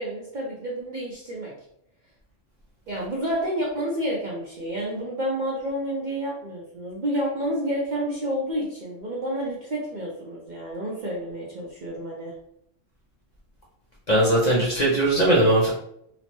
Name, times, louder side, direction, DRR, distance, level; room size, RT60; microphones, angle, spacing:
voice 1, 0.0-1.5 2.9-12.3, equal, 55° right, -4 dB, 0.5 m, -29 dB
voice 2, 14.1-15.7, right 1 dB, 50° left, -4 dB, 0.5 m, -19 dB
2.9 x 2.0 x 2.9 m, 0.72 s
omnidirectional pair, 1.3 m